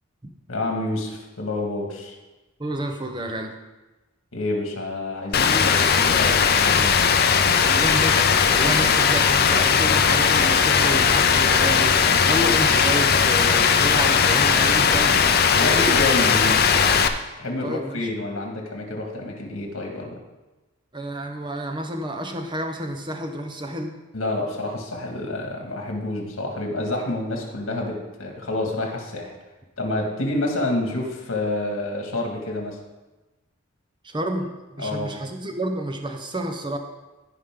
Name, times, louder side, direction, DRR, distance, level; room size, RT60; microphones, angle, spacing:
voice 1, 0.5-2.2 4.3-7.0 15.5-16.7 17.4-20.2 24.1-29.4 29.8-32.8 34.8-35.2, left 2 dB, 75° left, 1 dB, 1.9 m, -28 dB
voice 2, 2.6-3.5 7.6-15.2 15.6-15.8 17.6-18.1 20.9-24.0 34.0-36.8, right 1 dB, 20° right, 5 dB, 0.8 m, -30 dB
Rain, 5.3-17.1, left 6 dB, 50° left, 0.5 m, -18 dB
15.5 x 5.1 x 3.7 m, 1.1 s
head